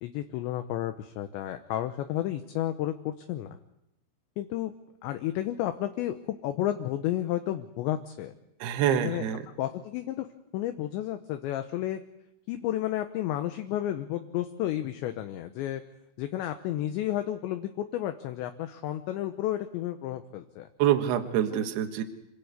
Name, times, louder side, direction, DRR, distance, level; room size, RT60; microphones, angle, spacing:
voice 1, 0.0-3.6 4.4-4.7 5.0-8.4 8.9-9.3 9.6-10.3 10.5-12.0 12.5-15.8 16.2-20.7 21.5-21.7, left 13 dB, 75° left, 7 dB, 2.9 m, -32 dB
voice 2, 8.6-9.4 20.8-22.0, right 11 dB, 65° right, 6 dB, 3.1 m, -26 dB
27.0 x 17.5 x 8.2 m, 0.87 s
omnidirectional pair, 5.7 m